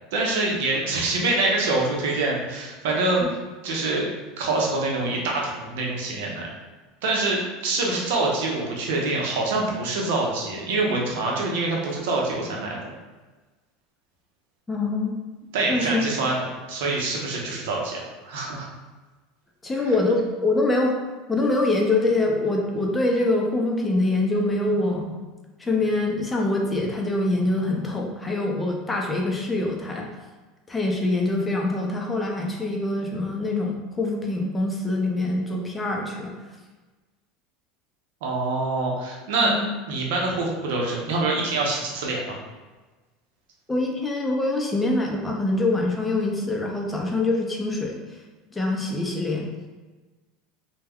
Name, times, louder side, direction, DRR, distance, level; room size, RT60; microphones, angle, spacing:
voice 1, 0.1-3.2 3.6-6.5 7.0-12.9 15.5-18.7 19.8-19.9 38.2-39.5 39.9-42.4, right 2 dB, 80° right, -1 dB, 0.7 m, -25 dB
voice 2, 14.7-15.1 15.7-16.0 19.6-20.9 21.3-25.3 25.6-30.1 30.7-36.3 39.4-39.7 43.7-48.0 48.5-49.5, left 2 dB, 15° left, 0 dB, 0.5 m, -24 dB
2.2 x 2.2 x 3.4 m, 1.2 s
supercardioid pair, 110°, 0 cm